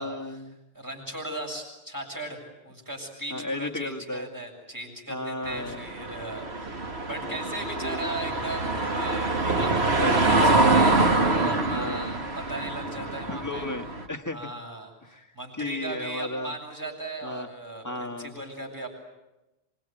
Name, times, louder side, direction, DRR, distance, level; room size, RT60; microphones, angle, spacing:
voice 1, 0.0-0.6 3.3-4.3 5.1-5.8 7.3-7.4 7.8-8.1 10.0-10.3 10.8-11.1 11.7-12.3 13.3-14.5 15.0-15.3 15.5-16.5 17.2-17.5 17.8-18.4, left 1 dB, 15° left, 4 dB, 1.6 m, -34 dB
voice 2, 0.7-13.7 14.3-18.9, right 1 dB, 15° right, 1 dB, 7.5 m, -37 dB
sound 1, 5.5-14.1, right 2 dB, 70° right, 2.5 m, -25 dB
27.0 x 24.5 x 9.1 m, 0.97 s
omnidirectional pair, 1.1 m